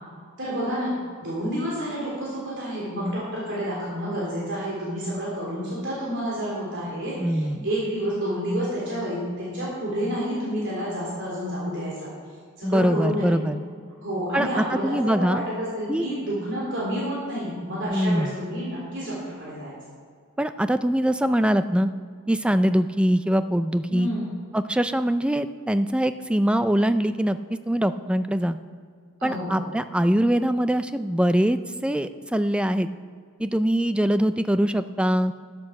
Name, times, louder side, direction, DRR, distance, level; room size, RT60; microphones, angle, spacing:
voice 1, 0.4-0.9 1.2-12.1 12.6-13.4 14.0-19.7 23.9-24.3 29.2-29.6, equal, 55° right, -6 dB, 3.3 m, -29 dB
voice 2, 7.2-7.7 12.6-13.6 14.3-15.4 15.9-16.1 17.9-18.3 20.4-21.9 22.3-24.1 24.5-27.4 27.7-28.6 29.2-32.9 33.4-35.3, equal, 5° right, 11 dB, 0.3 m, -23 dB
12.5 x 8.4 x 6.4 m, 2.1 s
head